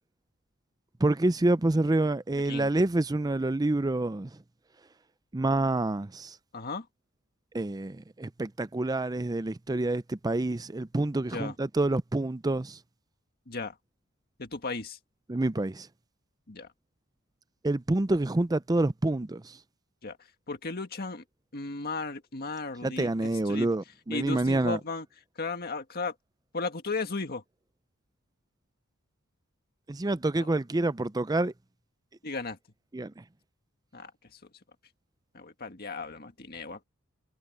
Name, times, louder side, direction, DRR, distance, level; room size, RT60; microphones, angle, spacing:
voice 1, 1.0-4.3 5.3-6.4 7.5-12.8 15.3-15.9 17.6-19.6 22.8-24.8 29.9-31.5 32.9-33.2, right 2 dB, 15° right, 0.5 m, -27 dB
voice 2, 6.5-6.9 11.3-11.5 13.5-13.8 14.4-15.0 16.5-16.7 20.0-20.2 20.5-21.2 21.5-23.7 24.1-25.1 25.4-26.2 26.5-27.4 30.4-30.5 32.2-32.6 33.9-34.4 35.3-36.8, left 3 dB, 45° left, 1.8 m, -35 dB
head